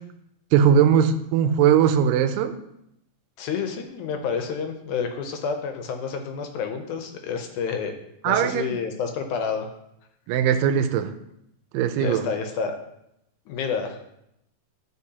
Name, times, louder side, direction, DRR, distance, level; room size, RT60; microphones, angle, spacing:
voice 1, 0.5-2.5 8.2-8.8 10.3-11.1 11.7-12.3, right 8 dB, 90° right, 8 dB, 2.3 m, -20 dB
voice 2, 3.4-7.9 8.2-9.7 12.0-12.8 13.5-14.0, left 6 dB, 75° left, 6 dB, 2.1 m, -29 dB
12.0 x 4.4 x 2.8 m, 0.81 s
omnidirectional pair, 3.8 m